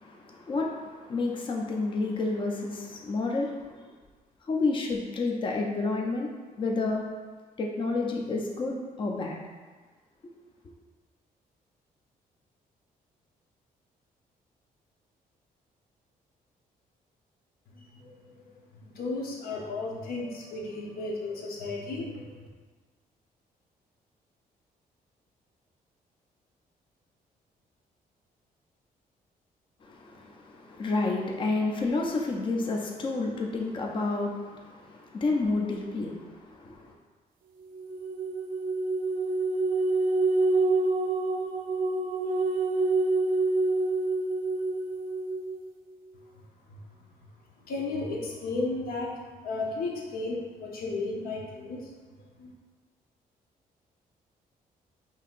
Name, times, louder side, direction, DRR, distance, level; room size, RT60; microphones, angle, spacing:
voice 1, 0.0-3.8 4.5-6.3 6.6-7.0 7.6-9.4 29.8-36.9, left 3 dB, 35° left, 0 dB, 0.5 m, -30 dB
voice 2, 17.7-22.5 46.7-46.8 47.6-51.9 52.2-52.5, left 3 dB, 75° left, -2 dB, 0.8 m, -34 dB
Spooky Celestial Sound, 37.7-45.6, right 3 dB, 65° right, 0.4 m, -27 dB
5.5 x 2.7 x 2.5 m, 1.4 s
cardioid pair, 140°, 16 cm